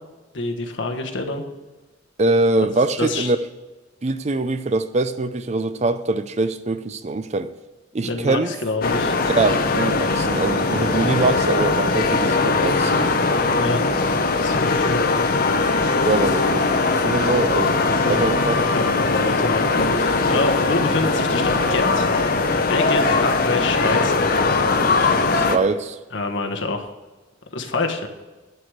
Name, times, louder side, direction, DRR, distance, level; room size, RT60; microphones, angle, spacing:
voice 1, 0.3-1.4 3.0-3.3 8.0-9.2 13.5-13.8 14.4-15.6 17.9-18.2 18.5-22.1 22.4-25.5 26.1-26.9 27.5-28.1, left 3 dB, 70° left, 1.3 m, -27 dB
voice 2, 2.2-3.4 4.0-7.5 7.9-8.5 9.2-13.0 16.1-16.7 17.0-18.8 20.3-20.4 25.3-26.0, right 2 dB, 35° right, 0.5 m, -23 dB
sound 1, 8.8-25.6, left 3 dB, 50° left, 0.8 m, -20 dB
11.5 x 4.9 x 8.1 m
head